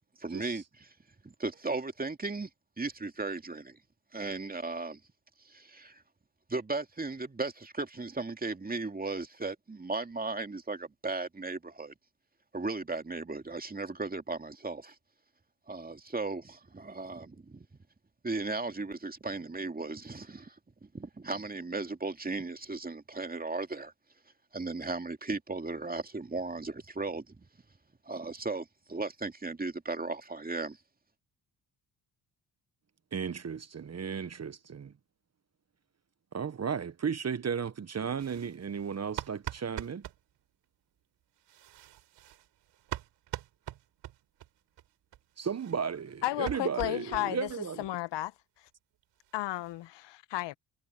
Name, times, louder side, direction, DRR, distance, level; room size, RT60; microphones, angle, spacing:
voice 1, 0.2-0.9 1.2-2.5 2.8-3.8 4.1-5.0 5.4-6.0 6.5-11.9 12.5-15.0 15.7-17.7 18.2-20.5 20.8-23.9 24.5-27.5 28.1-30.8, right 3 dB, 20° right, 2.4 m, -36 dB
voice 2, 33.1-34.9 36.3-40.0 45.4-47.8, right 6 dB, 35° right, 1.3 m, -34 dB
sound 1, 38.2-40.2 41.4-44.5 44.8-44.9 45.1-45.2 45.5-47.6 47.8-47.9 48.2-48.3 48.7-48.8 49.0-49.8, right 13 dB, 70° right, 6.3 m, -43 dB
voice 3, 46.2-47.5 47.8-48.3 49.3-50.5, left 16 dB, 65° left, 1.3 m, -33 dB
hypercardioid pair, 55°, 45 cm